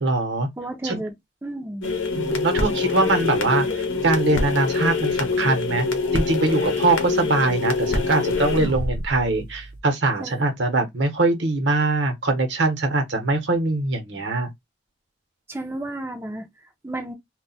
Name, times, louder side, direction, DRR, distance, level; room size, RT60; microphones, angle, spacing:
voice 1, 0.0-0.5 0.8-1.0 2.1-5.9 6.1-14.5, right 2 dB, 65° right, 0.9 m, -22 dB
voice 2, 0.6-1.1 1.4-2.0 10.2-10.4 15.5-17.1, right 1 dB, 15° right, 0.5 m, -33 dB
sound 1, 1.8-9.8, left 3 dB, 85° left, 0.8 m, -25 dB
2.3 x 2.1 x 3.9 m
head